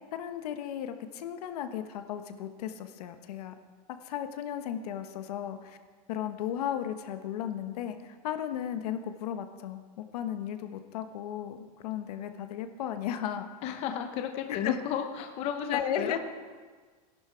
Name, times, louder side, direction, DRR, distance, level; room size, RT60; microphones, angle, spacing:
voice 1, 0.1-3.5 4.0-5.8 6.1-13.5 14.5-14.8 15.7-16.2, left 10 dB, 75° left, 8 dB, 1.2 m, -35 dB
voice 2, 13.6-16.2, left 8 dB, 30° left, 5 dB, 0.8 m, -33 dB
17.5 x 11.5 x 4.5 m, 1.5 s
supercardioid pair, 180°, 20 cm